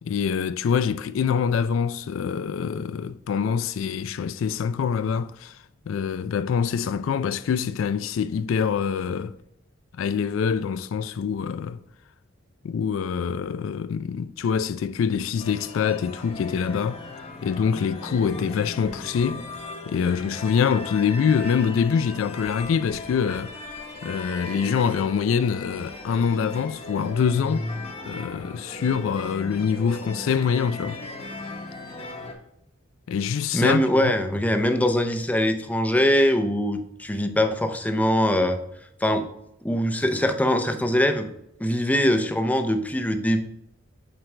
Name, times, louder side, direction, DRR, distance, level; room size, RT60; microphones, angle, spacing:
voice 1, 0.0-5.6 5.9-9.3 10.0-11.8 12.6-17.0 17.4-19.5 19.9-27.7 28.1-31.0 33.1-34.1, left 6 dB, 70° left, 0.3 m, -25 dB
sound 1, 15.4-32.3, left 2 dB, 30° left, 1.0 m, -37 dB
voice 2, 33.5-38.6 39.0-39.3 39.6-41.3 41.6-43.4, equal, 10° left, 0.5 m, -22 dB
7.9 x 4.6 x 3.2 m
head